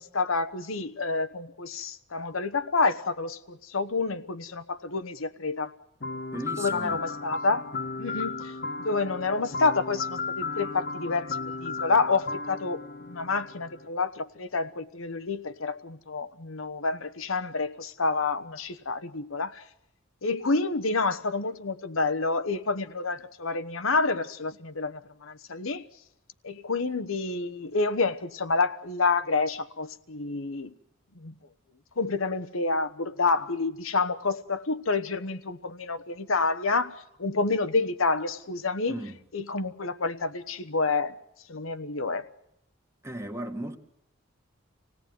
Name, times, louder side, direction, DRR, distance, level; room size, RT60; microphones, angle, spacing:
voice 1, 0.0-5.7 6.6-7.7 8.0-8.5 8.8-12.8 13.1-19.6 20.2-25.8 26.4-30.7 31.2-31.3 32.0-39.0 39.3-41.2 41.5-42.2, left 3 dB, 75° left, 1.1 m, -28 dB
sound 1, 6.0-13.9, left 4 dB, 50° left, 1.4 m, -35 dB
voice 2, 6.3-7.0 38.9-39.2 43.0-43.8, right 1 dB, 15° right, 1.7 m, -36 dB
26.5 x 17.5 x 9.4 m
head